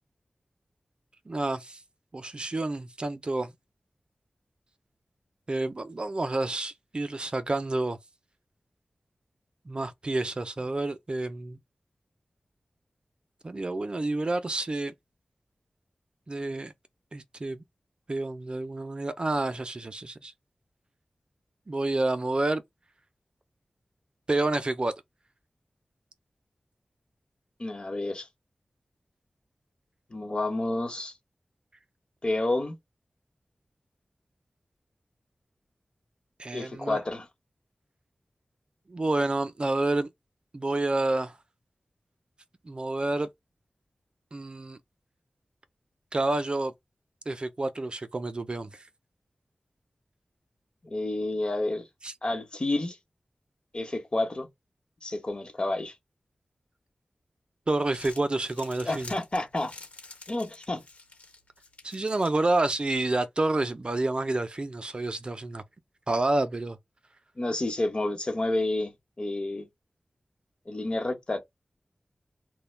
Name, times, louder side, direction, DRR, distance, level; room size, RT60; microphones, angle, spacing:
voice 1, 1.3-1.8 2.1-3.5 5.5-8.0 9.7-11.6 13.4-14.9 16.3-16.7 17.1-17.6 18.1-20.3 21.7-22.6 24.3-24.9 36.4-37.0 38.9-40.1 40.5-41.3 42.6-43.3 44.3-44.8 46.1-46.7 47.3-48.7 52.0-52.1 57.7-59.1 61.8-65.6 66.1-66.8, right 2 dB, 45° right, 0.4 m, -29 dB
voice 2, 27.6-28.3 30.1-31.1 32.2-32.7 36.5-37.3 50.8-51.9 52.2-53.0 53.7-54.5 55.0-56.0 58.8-59.7 60.3-60.8 67.4-68.9 69.2-69.7 70.7-71.4, left 2 dB, 45° left, 0.9 m, -29 dB
Crumpling crinkling, 57.7-63.0, left 3 dB, 70° left, 1.0 m, -49 dB
2.1 x 2.1 x 3.2 m
cardioid pair, 45°, 2 cm